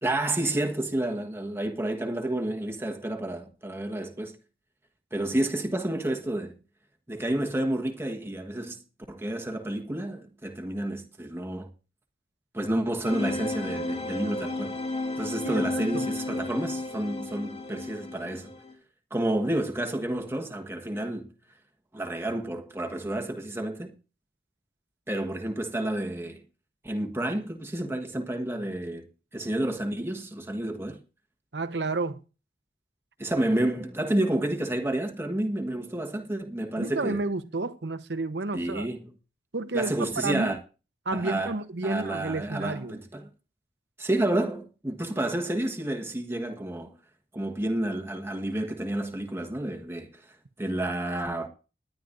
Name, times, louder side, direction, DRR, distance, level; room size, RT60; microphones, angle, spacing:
voice 1, 0.0-4.3 5.1-6.6 7.1-8.8 9.1-11.7 12.5-14.8 15.2-18.5 19.1-21.3 21.9-23.9 25.1-26.4 26.8-29.1 29.3-31.0 33.2-37.2 38.5-39.1 39.7-40.6 41.1-41.5 41.8-43.3 44.0-46.9 47.3-51.5, right 1 dB, 15° right, 1.3 m, -30 dB
sound 1, 13.0-18.7, left 2 dB, 35° left, 2.8 m, -33 dB
voice 2, 15.4-16.1 31.5-32.2 36.8-38.9 39.5-40.5 41.1-43.0, right 3 dB, 80° right, 0.9 m, -31 dB
20.0 x 10.5 x 2.6 m
head